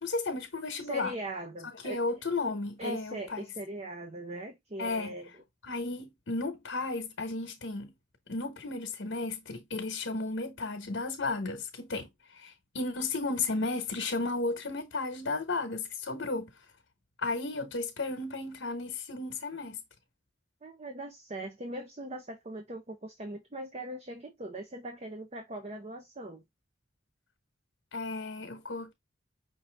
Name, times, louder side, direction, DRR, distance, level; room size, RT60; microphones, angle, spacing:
voice 1, 0.0-1.1 1.8-3.4 4.8-5.1 5.6-7.9 8.3-12.1 12.4-16.5 17.2-19.8 27.9-28.9, left 3 dB, 90° left, 1.1 m, -34 dB
voice 2, 0.8-2.0 2.8-5.4 20.6-26.4, right 1 dB, 35° right, 0.8 m, -40 dB
5.6 x 2.7 x 3.3 m
head